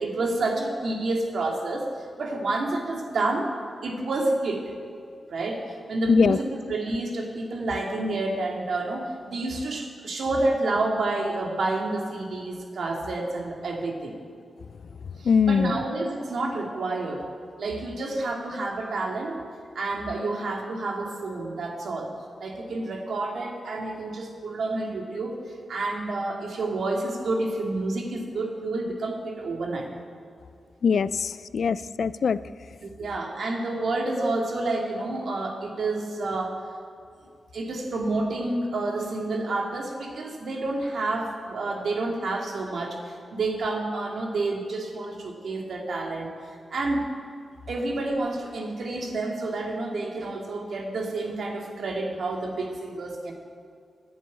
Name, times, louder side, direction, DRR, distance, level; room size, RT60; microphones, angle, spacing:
voice 1, 0.0-1.9 2.2-3.5 3.8-4.6 5.3-14.1 15.2-17.2 17.6-19.3 19.7-22.1 22.4-25.4 25.7-29.9 32.8-36.6 37.5-46.3 46.7-47.0 47.7-53.3, right 2 dB, 75° right, 0 dB, 2.1 m, -29 dB
voice 2, 15.2-15.8 30.8-32.4, left 6 dB, 70° left, 17 dB, 0.3 m, -22 dB
10.0 x 7.4 x 9.4 m, 2.3 s
cardioid pair, 90°, 0 cm